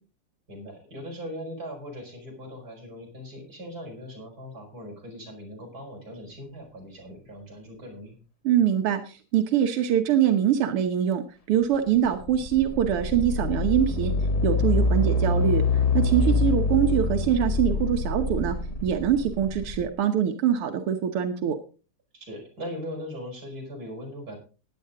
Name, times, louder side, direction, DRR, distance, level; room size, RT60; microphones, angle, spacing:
voice 1, 0.5-8.2 16.2-16.4 22.1-24.4, equal, 40° right, 0 dB, 5.6 m, -39 dB
voice 2, 8.4-11.2 11.5-14.1 14.4-18.6 18.8-21.6, right 9 dB, 90° right, 6 dB, 2.1 m, -24 dB
sound 1, 11.9-19.9, left 3 dB, 60° left, 0.3 m, -25 dB
15.5 x 10.5 x 3.8 m, 0.35 s
omnidirectional pair, 2.4 m